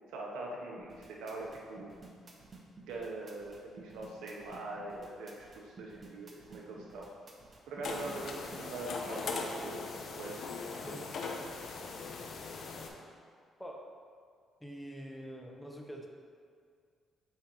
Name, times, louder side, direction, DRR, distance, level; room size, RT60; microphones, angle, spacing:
voice 1, 0.1-1.9 2.8-7.1 7.7-9.8 10.1-10.5, right 2 dB, 85° right, -2 dB, 0.7 m, -42 dB
sound 1, 0.8-8.6, right 3 dB, 35° right, 1.0 m, -53 dB
sound 2, 7.8-12.9, left 4 dB, 60° left, 0.7 m, -40 dB
voice 2, 10.8-11.2 13.6-13.9 14.6-16.1, equal, 5° left, 1 dB, 0.9 m, -45 dB
8.3 x 5.0 x 2.9 m, 2.1 s
cardioid pair, 90°, 0 cm